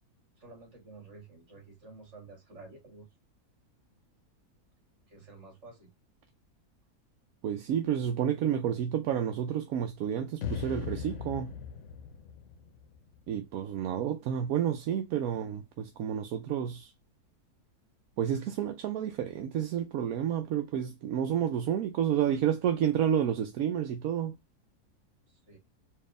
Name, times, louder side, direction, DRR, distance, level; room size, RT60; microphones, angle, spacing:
voice 1, 0.4-3.1 5.1-5.9 25.3-25.6, right 3 dB, 45° right, 2.5 m, -51 dB
voice 2, 7.4-11.5 13.3-16.9 18.2-24.4, right 9 dB, 70° right, 1.0 m, -30 dB
sound 1, 10.4-13.6, left 7 dB, 60° left, 0.9 m, -39 dB
4.6 x 2.8 x 3.2 m
omnidirectional pair, 1.7 m